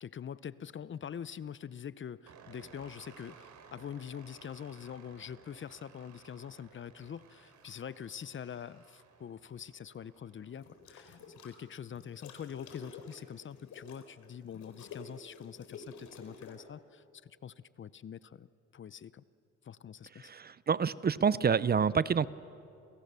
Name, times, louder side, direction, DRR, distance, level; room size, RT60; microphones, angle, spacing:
voice 1, 0.0-19.2 19.6-20.3, left 8 dB, 40° left, 17 dB, 0.7 m, -44 dB
sound 1, 2.3-10.9, right 6 dB, 70° right, 3.2 m, -58 dB
sound 2, 8.0-8.7 10.6-11.6 11.9-16.6, left 4 dB, 75° left, 4.2 m, -51 dB
voice 2, 20.2-22.3, right 6 dB, 30° right, 18 dB, 0.6 m, -28 dB
29.5 x 28.5 x 6.9 m, 2.6 s
cardioid pair, 90°, 30 cm